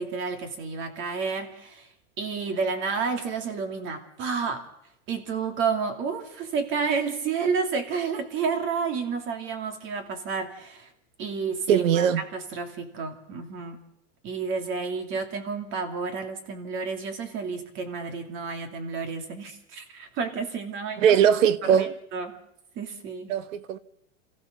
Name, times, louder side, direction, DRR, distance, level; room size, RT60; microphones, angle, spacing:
voice 1, 0.0-1.9 2.2-4.6 5.1-10.9 11.2-13.8 14.2-21.1 21.7-21.9 22.1-22.3 22.8-23.3, right 5 dB, 30° right, 2.8 m, -30 dB
voice 2, 11.7-12.2 21.0-21.9 23.3-23.8, right 9 dB, 75° right, 1.4 m, -20 dB
28.0 x 15.0 x 6.7 m
supercardioid pair, 160°, 39 cm